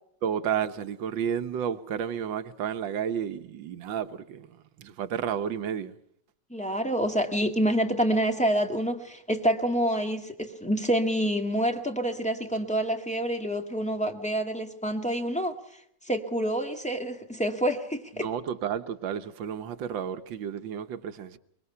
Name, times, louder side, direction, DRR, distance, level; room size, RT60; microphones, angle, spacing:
voice 1, 0.2-6.0 18.2-21.4, right 8 dB, 85° right, 1.8 m, -32 dB
voice 2, 6.5-15.5 16.1-18.3, equal, 5° left, 1.9 m, -27 dB
23.5 x 23.5 x 5.6 m
omnidirectional pair, 2.0 m